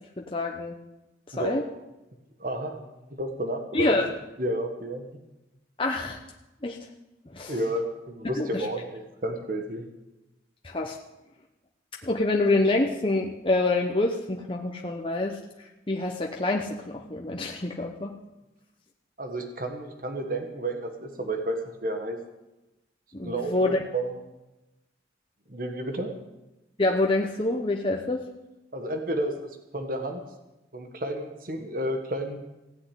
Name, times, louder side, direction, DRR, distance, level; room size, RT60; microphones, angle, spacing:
voice 1, 0.2-0.8 1.3-1.6 3.7-4.1 5.8-6.2 6.6-6.9 7.3-7.5 8.4-8.6 10.6-11.0 12.0-15.4 15.9-18.2 23.1-23.8 26.8-28.2, left 2 dB, 30° left, 1 dB, 0.9 m, -26 dB
voice 2, 2.4-4.1 4.4-5.0 7.5-9.8 19.2-22.2 23.2-24.2 25.5-26.1 28.7-30.2 30.7-32.4, right 1 dB, 50° right, 5 dB, 1.6 m, -31 dB
16.5 x 6.9 x 9.9 m, 0.99 s
head